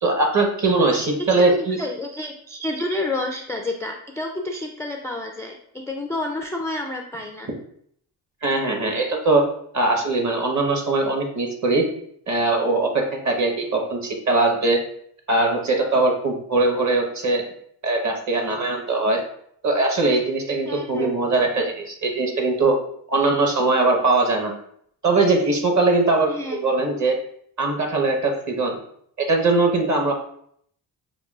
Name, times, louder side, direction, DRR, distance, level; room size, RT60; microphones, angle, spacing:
voice 1, 0.0-1.8 8.4-9.5 9.7-11.8 12.3-14.8 15.3-17.4 17.8-19.2 19.6-22.8 23.1-24.5 25.0-27.1 27.6-28.7 29.2-30.1, right 3 dB, 40° right, 2 dB, 1.2 m, -21 dB
voice 2, 1.3-5.6 5.9-7.5 20.7-21.1 26.3-26.6, left 2 dB, 5° left, 1 dB, 0.3 m, -29 dB
6.0 x 2.3 x 2.4 m, 0.66 s
supercardioid pair, 55°, 45 cm